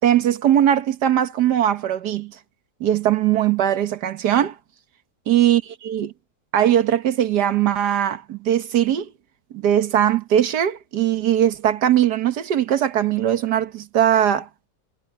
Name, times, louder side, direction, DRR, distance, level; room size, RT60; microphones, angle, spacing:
voice 1, 0.0-2.3 2.8-4.5 5.3-6.1 6.5-9.1 9.5-14.5, right 10 dB, 90° right, 1.7 m, -20 dB
omnidirectional pair, 1.7 m